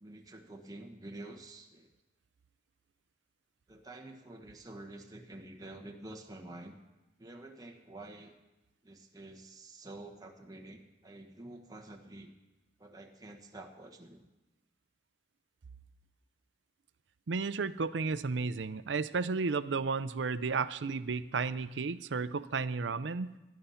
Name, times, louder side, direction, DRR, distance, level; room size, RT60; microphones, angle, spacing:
voice 1, 0.0-1.9 3.7-6.8 7.2-8.3 8.8-12.3 12.8-14.3, right 2 dB, 20° right, 3 dB, 1.2 m, -48 dB
voice 2, 17.3-23.3, right 4 dB, 90° right, 15 dB, 0.6 m, -33 dB
17.5 x 11.5 x 5.7 m, 1.1 s
head